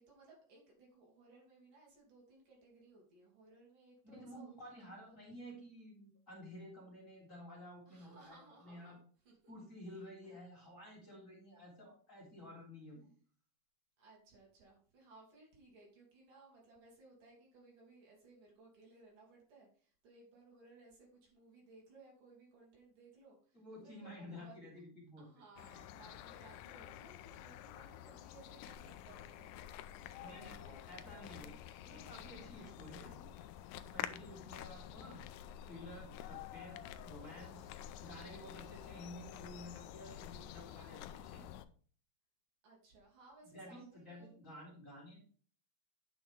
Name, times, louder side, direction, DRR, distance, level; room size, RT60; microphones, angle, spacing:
voice 1, 0.0-5.2 7.9-9.5 9.9-10.4 14.0-24.6 25.2-31.6 42.6-44.5, right 3 dB, 70° right, -2 dB, 4.5 m, -62 dB
voice 2, 4.1-9.0 9.5-13.1 23.5-25.3 30.2-33.3 33.9-35.2 35.6-37.7 38.0-41.5 43.4-45.2, left 1 dB, 25° left, -3 dB, 3.4 m, -52 dB
sound 1, 25.6-41.7, left 11 dB, 80° left, 2.0 m, -49 dB
9.6 x 6.2 x 3.6 m, 0.44 s
omnidirectional pair, 3.9 m